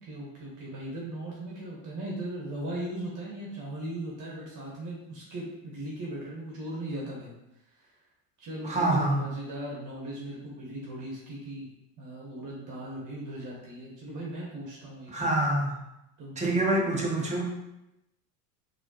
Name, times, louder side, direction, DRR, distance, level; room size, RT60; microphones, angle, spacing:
voice 1, 0.0-7.3 7.8-7.9 8.4-11.7 12.0-15.4 16.2-16.6, right 1 dB, 40° right, -4 dB, 1.4 m, -38 dB
voice 2, 8.6-9.2 15.1-15.8 16.4-17.5, right 1 dB, 15° right, -3 dB, 1.2 m, -26 dB
4.0 x 3.0 x 3.0 m, 0.88 s
hypercardioid pair, 85°, 48 cm